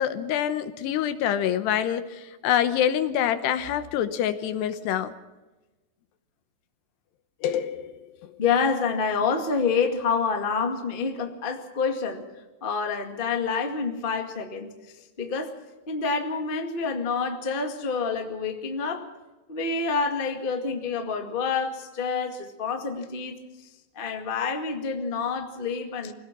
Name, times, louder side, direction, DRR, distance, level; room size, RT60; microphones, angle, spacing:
voice 1, 0.0-5.1 7.4-8.0, left 10 dB, 80° left, 11 dB, 3.0 m, -26 dB
voice 2, 8.4-12.2 12.6-15.5 15.9-19.1 19.5-23.4 23.9-26.1, left 5 dB, 50° left, 4 dB, 0.6 m, -28 dB
25.5 x 17.5 x 5.9 m, 1.1 s
omnidirectional pair, 5.0 m